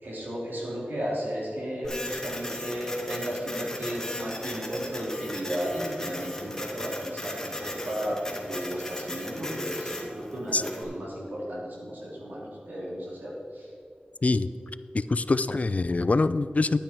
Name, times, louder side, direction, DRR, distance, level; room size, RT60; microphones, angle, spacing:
voice 1, 0.0-13.7, equal, 85° right, -4 dB, 3.1 m, -34 dB
Printer, 1.8-10.8, left 1 dB, 15° left, 1.8 m, -37 dB
voice 2, 14.9-16.8, left 3 dB, 50° left, 14 dB, 0.4 m, -24 dB
11.5 x 9.1 x 4.5 m, 2.5 s
wide cardioid pair, 65°, 3 cm